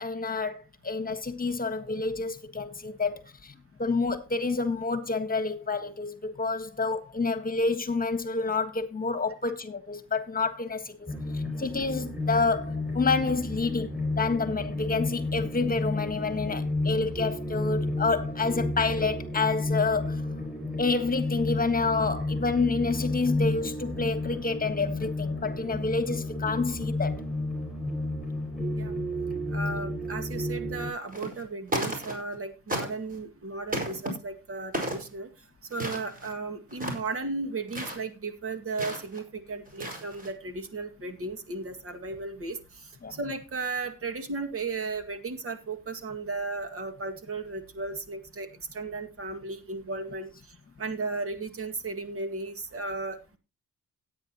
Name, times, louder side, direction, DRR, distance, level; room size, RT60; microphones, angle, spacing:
voice 1, 0.0-10.9 11.3-13.9 14.2-20.2 20.8-27.2 43.0-43.2, left 4 dB, 30° left, 1.6 m, -28 dB
sound 1, 11.1-30.9, left 2 dB, 5° right, 5.6 m, -31 dB
voice 2, 29.5-35.3 35.7-53.4, right 3 dB, 50° right, 2.1 m, -35 dB
sound 2, 31.1-31.4 31.7-32.4 32.7-33.2 33.7-34.1 34.7-35.1 35.7-36.3 36.7-37.1 37.7-38.0 38.8-39.2 39.7-40.3, right 1 dB, 30° right, 5.2 m, -33 dB
17.0 x 9.0 x 2.9 m
cardioid pair, 90°, 30 cm